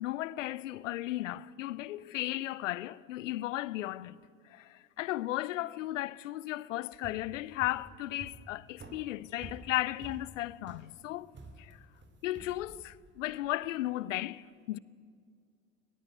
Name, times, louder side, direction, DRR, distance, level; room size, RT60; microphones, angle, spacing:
voice 1, 0.0-4.1 4.5-11.3 11.6-11.8 12.2-14.8, left 15 dB, 65° left, 0.7 m, -35 dB
sound 1, 6.9-13.5, right 3 dB, 25° right, 3.1 m, -50 dB
20.5 x 20.5 x 9.1 m
figure-of-eight pair, 70°, 40 cm